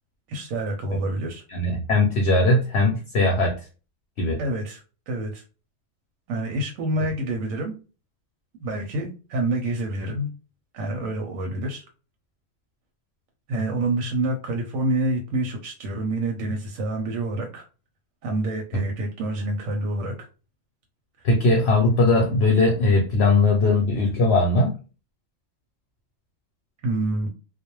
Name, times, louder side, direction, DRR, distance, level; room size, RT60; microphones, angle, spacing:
voice 1, 0.3-1.4 4.4-5.4 6.3-7.7 8.6-10.3 10.7-11.8 13.5-17.6 18.2-20.3 26.8-27.3, right 1 dB, 90° right, 2 dB, 1.0 m, -27 dB
voice 2, 1.5-3.5 4.2-4.4 21.2-24.7, left 2 dB, 65° left, 1 dB, 0.8 m, -19 dB
2.3 x 2.1 x 2.9 m, 0.34 s
omnidirectional pair, 1.3 m